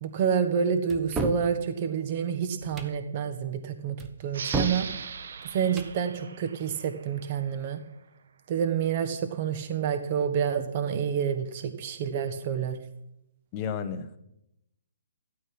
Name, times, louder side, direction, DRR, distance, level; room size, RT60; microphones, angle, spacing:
voice 1, 0.0-4.9 5.4-7.8 8.5-12.8, right 7 dB, 30° right, 9 dB, 1.2 m, -28 dB
sound 1, 0.9-1.5 2.6-3.0 4.0-4.9 5.6-6.0, right 2 dB, 10° right, 1.0 m, -32 dB
sound 2, 4.3-7.6, right 6 dB, 60° right, 1.1 m, -39 dB
voice 2, 13.5-14.2, left 7 dB, 20° left, 7 dB, 1.0 m, -32 dB
14.5 x 12.5 x 6.0 m, 0.84 s
hypercardioid pair, 165°, 0 cm